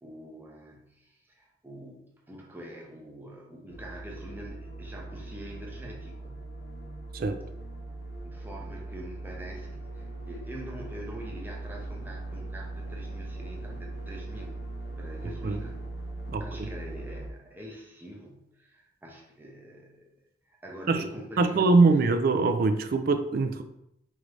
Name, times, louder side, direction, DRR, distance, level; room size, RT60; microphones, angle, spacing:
voice 1, 0.0-6.5 8.2-14.6 15.0-15.8 16.4-20.0 20.5-22.0, equal, 10° right, -1 dB, 0.7 m, -45 dB
sound 1, 3.7-17.3, right 2 dB, 65° left, 0.7 m, -40 dB
voice 2, 21.4-23.6, right 3 dB, 55° right, 9 dB, 0.3 m, -23 dB
4.8 x 2.6 x 3.1 m, 0.79 s
head